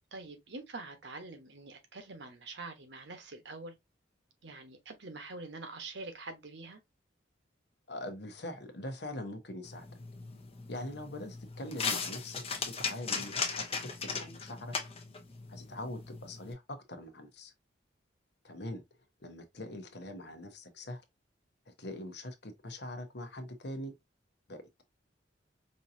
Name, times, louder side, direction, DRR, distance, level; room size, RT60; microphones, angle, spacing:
voice 1, 0.1-3.7 4.4-6.8, right 3 dB, 65° right, 1.1 m, -45 dB
voice 2, 7.9-9.9 10.7-14.7 15.5-17.5 18.4-18.8 19.2-21.0 21.7-23.9 24.5-24.6, left 1 dB, 60° left, 1.0 m, -42 dB
sound 1, 9.6-16.5, left 5 dB, 30° left, 0.8 m, -38 dB
5.4 x 2.8 x 2.6 m
head